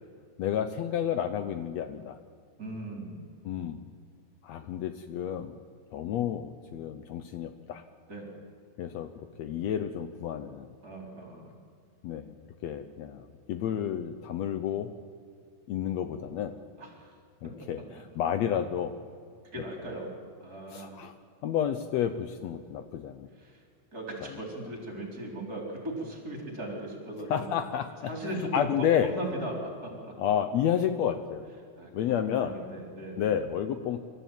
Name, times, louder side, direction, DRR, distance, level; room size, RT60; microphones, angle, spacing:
voice 1, 0.4-2.2 3.4-3.8 4.4-5.5 5.9-7.8 8.8-10.7 12.0-12.3 12.6-14.9 15.7-16.6 17.4-19.0 20.7-21.1 21.4-23.3 24.2-24.4 27.3-29.1 30.2-31.5 31.9-32.6 33.2-34.1, left 9 dB, 70° left, 10 dB, 1.9 m, -31 dB
voice 2, 2.6-3.1 8.1-8.3 10.8-11.5 16.8-17.1 17.4-17.5 19.5-20.1 20.4-21.0 23.4-23.6 23.9-27.5 28.0-30.1 31.8-33.3, right 1 dB, 30° right, 1 dB, 4.7 m, -38 dB
25.5 x 14.0 x 9.2 m, 2.2 s
omnidirectional pair, 3.4 m